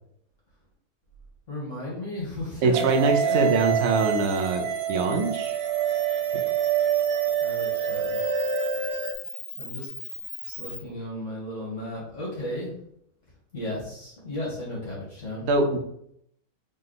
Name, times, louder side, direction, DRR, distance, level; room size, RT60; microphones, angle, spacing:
voice 1, 1.5-3.5 7.4-8.2 9.6-9.9 10.5-12.7 13.5-15.5, left 1 dB, 50° left, -5 dB, 1.9 m, -35 dB
voice 2, 2.6-5.6 15.5-15.8, right 3 dB, 55° right, 4 dB, 0.8 m, -23 dB
sound 1, 2.7-9.1, right 8 dB, 75° right, 1.1 m, -26 dB
Camera, 3.8-10.8, left 2 dB, 30° left, 0.9 m, -41 dB
3.8 x 3.3 x 3.9 m, 0.73 s
omnidirectional pair, 1.6 m